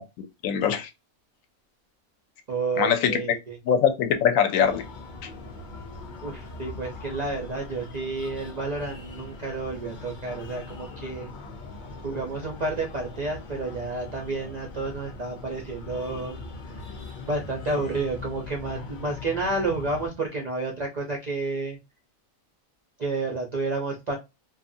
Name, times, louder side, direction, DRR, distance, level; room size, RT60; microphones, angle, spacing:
voice 1, 0.2-0.9 2.8-3.2 3.7-4.8, left 8 dB, 75° left, 0.9 m, -22 dB
voice 2, 2.5-3.6 6.2-11.3 12.0-16.4 16.6-16.8 17.2-21.8 23.0-24.2, right 3 dB, 60° right, 0.4 m, -30 dB
Breathing, 4.6-20.1, left 3 dB, 50° left, 0.6 m, -41 dB
2.6 x 2.4 x 2.5 m
omnidirectional pair, 1.5 m